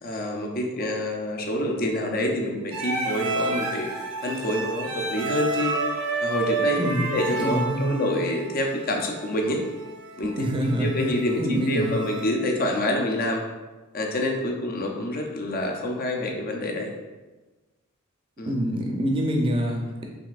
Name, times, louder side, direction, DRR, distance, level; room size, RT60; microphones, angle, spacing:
voice 1, 0.0-3.9 4.2-5.7 6.2-9.6 10.2-10.3 10.8-13.4 13.9-16.9 18.4-18.5, left 1 dB, 45° left, 2 dB, 0.5 m, -27 dB
sound 1, 2.7-12.3, right 3 dB, 85° right, 0.7 m, -30 dB
voice 2, 6.8-7.1 7.4-7.9 10.4-11.9 18.5-20.0, equal, 25° right, 1 dB, 0.5 m, -26 dB
5.2 x 3.1 x 2.4 m, 1.2 s
head